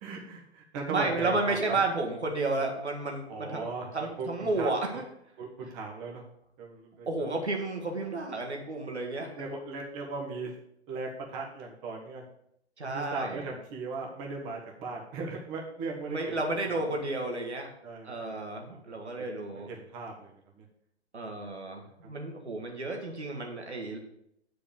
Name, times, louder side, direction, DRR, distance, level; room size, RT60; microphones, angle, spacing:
voice 1, 0.0-1.8 3.3-4.7 5.4-6.2 6.6-7.3 9.4-10.5 10.9-12.2 12.8-16.4 16.6-17.0 17.8-18.9 19.4-20.6, right 3 dB, 25° right, 0 dB, 1.5 m, -38 dB
voice 2, 0.9-5.0 7.1-9.4 12.8-13.5 16.1-17.7 18.0-19.7 21.1-24.0, right 2 dB, 75° right, 1 dB, 2.1 m, -32 dB
8.5 x 5.0 x 6.9 m, 0.75 s
figure-of-eight pair, 115°, 33 cm